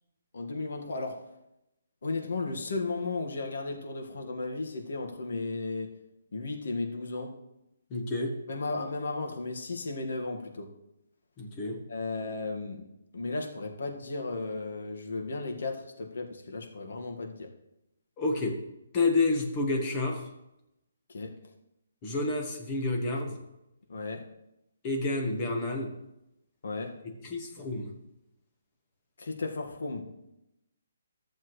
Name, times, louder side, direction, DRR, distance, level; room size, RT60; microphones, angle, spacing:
voice 1, 0.3-1.2 2.0-5.9 6.3-7.4 8.5-10.7 11.9-12.8 13.1-17.5 21.1-21.3 23.9-24.2 26.6-26.9 29.2-30.1, left 3 dB, 65° left, 2 dB, 1.7 m, -34 dB
voice 2, 7.9-8.3 11.4-11.8 18.2-18.6 18.9-20.3 22.0-23.4 24.8-25.9 27.2-27.9, left 2 dB, 20° left, 2 dB, 1.2 m, -29 dB
14.0 x 7.1 x 3.2 m, 0.88 s
hypercardioid pair, 175°, 0 cm